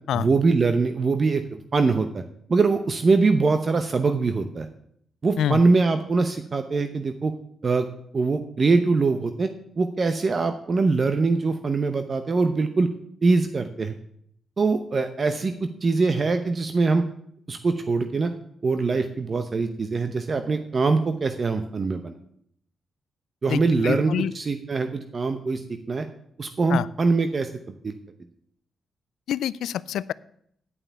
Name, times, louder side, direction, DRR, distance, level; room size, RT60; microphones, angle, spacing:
voice 1, 0.1-2.2 2.5-4.7 5.2-7.3 7.6-7.8 8.1-9.5 9.8-12.9 13.2-13.9 14.6-15.5 15.8-17.0 17.5-18.3 18.6-22.2 23.4-25.6 25.9-26.0 26.4-27.5 27.8-28.0, right 4 dB, 40° right, 8 dB, 0.8 m, -23 dB
voice 2, 23.5-24.3 26.7-26.9 29.3-30.1, left 10 dB, 85° left, 20 dB, 0.3 m, -26 dB
9.7 x 5.5 x 8.1 m, 0.68 s
cardioid pair, 75°, 0 cm